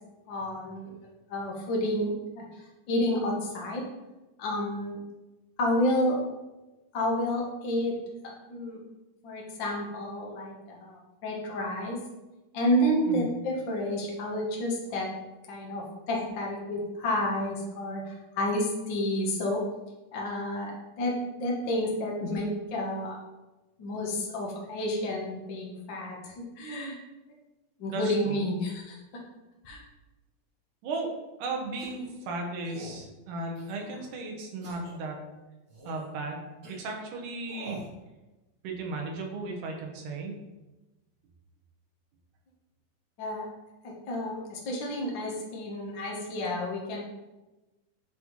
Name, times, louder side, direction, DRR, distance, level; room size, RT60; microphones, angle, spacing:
voice 1, 0.3-0.9 1.3-2.4 2.9-3.9 4.4-5.0 5.6-6.2 6.9-8.0 8.2-8.8 9.2-12.0 12.5-15.1 15.5-19.6 20.1-20.7 21.0-21.1 21.4-23.2 23.8-27.0 27.8-29.0 29.6-29.8 43.2-43.5 44.1-47.0, left 1 dB, 90° left, -2 dB, 1.0 m, -30 dB
voice 2, 27.9-28.4 30.8-31.1 31.4-35.2 35.9-37.8 38.6-40.3, right 2 dB, 70° right, 2 dB, 2.3 m, -35 dB
sound 1, 31.8-32.1 32.6-33.0 33.6-34.1 34.6-34.9 35.7-36.1 36.6-36.8 37.4-37.9, right 1 dB, 45° right, 1.2 m, -45 dB
9.2 x 4.0 x 3.1 m, 1.1 s
omnidirectional pair, 4.0 m